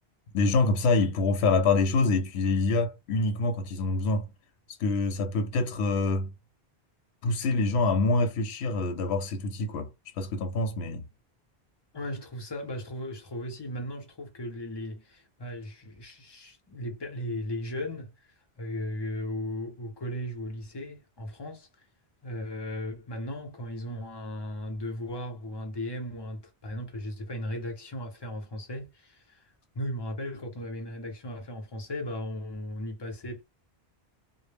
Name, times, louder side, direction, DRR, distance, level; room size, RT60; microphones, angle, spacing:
voice 1, 0.3-4.3 4.8-6.3 7.2-9.9 10.2-11.1, left 3 dB, 80° left, 0.9 m, -26 dB
voice 2, 11.9-18.3 18.6-21.7 22.2-29.4 29.7-33.4, left 1 dB, 30° left, 0.6 m, -36 dB
2.1 x 2.0 x 3.3 m
omnidirectional pair, 1.1 m